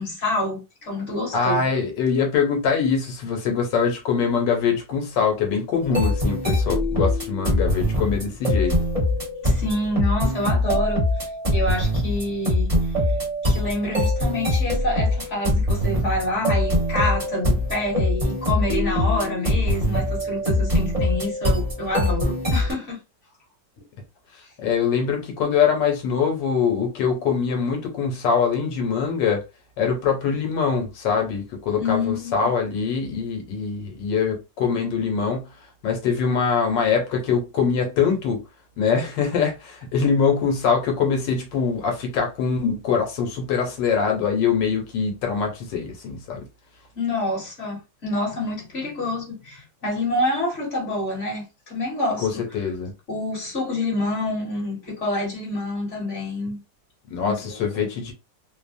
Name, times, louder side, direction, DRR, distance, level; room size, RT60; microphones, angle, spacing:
voice 1, 0.0-1.7 9.4-11.0 11.5-12.9 13.4-23.0 31.8-32.4 46.9-52.4 53.1-56.6 57.2-57.9, left 1 dB, 45° left, 1.5 m, -27 dB
voice 2, 1.3-8.8 24.6-29.4 29.8-35.5 35.8-38.4 38.8-46.5 52.2-52.9 57.1-58.1, left 6 dB, 85° left, 1.5 m, -23 dB
sound 1, 5.8-22.7, left 1 dB, 25° right, 0.9 m, -23 dB
3.2 x 2.0 x 2.5 m
omnidirectional pair, 1.9 m